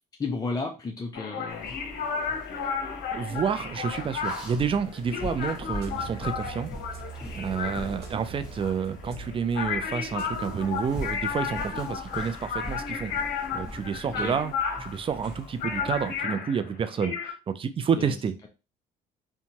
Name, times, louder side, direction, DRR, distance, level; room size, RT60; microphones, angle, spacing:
voice 1, 0.2-1.7 14.0-14.4 18.0-18.1, left 3 dB, 20° left, 2 dB, 0.5 m, -33 dB
sound 1, 1.1-17.3, left 6 dB, 70° left, 0.8 m, -33 dB
sound 2, 1.5-16.2, left 1 dB, 5° right, 1.2 m, -42 dB
voice 2, 3.1-6.7 7.3-13.1 13.5-14.5 14.8-18.5, right 6 dB, 30° right, 11 dB, 0.4 m, -29 dB
sound 3, 5.1-10.7, right 6 dB, 65° right, 1.0 m, -44 dB
2.7 x 2.2 x 2.8 m, 0.30 s
supercardioid pair, 70°, 17 cm